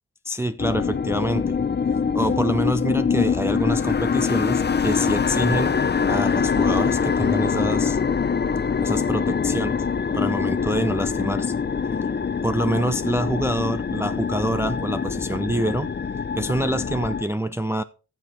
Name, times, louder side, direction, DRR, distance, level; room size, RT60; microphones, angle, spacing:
voice 1, 0.3-1.6 2.1-5.8 6.1-8.0 8.8-9.9 10.1-11.5 11.8-11.9 12.4-15.9 16.4-17.8, right 1 dB, 10° right, 0.5 m, -26 dB
sound 1, 0.6-17.2, left 6 dB, 35° left, 0.7 m, -24 dB
15.0 x 5.1 x 4.3 m
wide cardioid pair, 85°, 31 cm